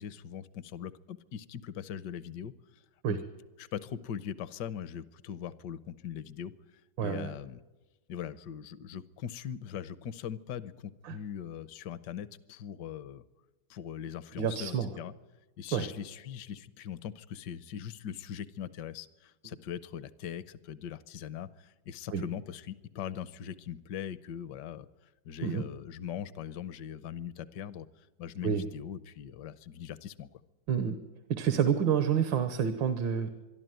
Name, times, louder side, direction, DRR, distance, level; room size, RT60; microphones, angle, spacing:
voice 1, 0.0-2.8 3.1-3.2 3.6-6.5 7.0-7.6 8.1-13.2 13.7-15.1 15.6-24.9 25.2-30.4, left 9 dB, 70° left, 16 dB, 1.4 m, -41 dB
voice 2, 7.0-7.3 11.0-11.2 14.4-14.9 15.7-15.9 22.1-22.2 25.4-25.6 28.4-28.7 30.7-31.0 31.3-33.3, right 8 dB, 90° right, 9 dB, 1.8 m, -28 dB
23.5 x 13.0 x 9.2 m, 1.1 s
omnidirectional pair, 2.0 m